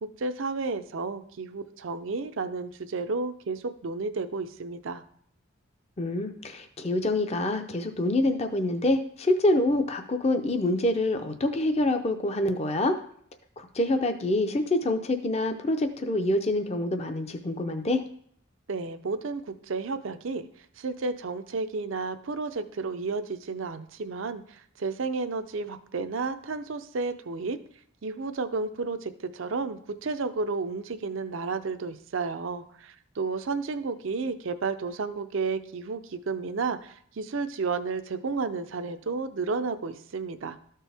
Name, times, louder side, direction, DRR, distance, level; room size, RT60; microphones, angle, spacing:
voice 1, 0.0-5.0 18.7-20.5 20.8-27.6 28.0-40.6, right 4 dB, 70° right, 10 dB, 0.5 m, -32 dB
voice 2, 6.0-12.9 13.6-18.0, left 1 dB, 30° left, 6 dB, 0.6 m, -26 dB
13.0 x 4.5 x 3.4 m, 0.63 s
head